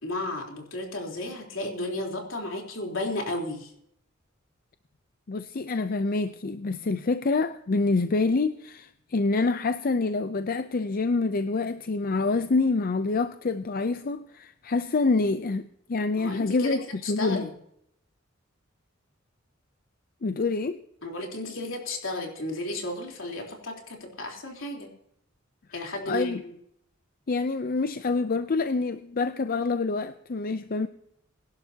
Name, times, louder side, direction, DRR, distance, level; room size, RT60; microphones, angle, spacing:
voice 1, 0.0-3.7 16.2-16.8 17.0-17.5 21.0-24.9 25.7-26.5, left 1 dB, 70° left, 1 dB, 3.6 m, -33 dB
voice 2, 5.3-16.8 17.1-17.5 20.2-20.8 26.1-26.4 27.3-30.9, left 3 dB, 45° left, 11 dB, 0.5 m, -26 dB
23.5 x 11.5 x 2.8 m, 0.73 s
head